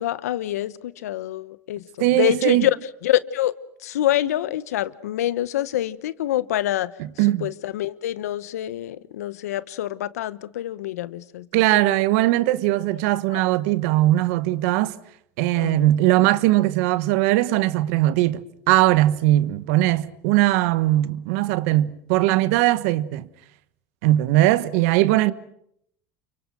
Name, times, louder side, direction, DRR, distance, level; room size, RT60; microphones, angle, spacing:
voice 1, 0.0-2.8 3.0-3.5 3.8-6.9 7.2-11.5 11.7-12.0 12.6-12.7 13.3-13.4 15.5-15.9, left 13 dB, 90° left, 1.0 m, -26 dB
voice 2, 2.0-2.7 7.2-7.5 11.5-14.9 15.4-18.4 18.7-23.3 24.0-25.3, right 16 dB, 75° right, 1.3 m, -20 dB
29.5 x 24.5 x 6.3 m
supercardioid pair, 100°, 8 cm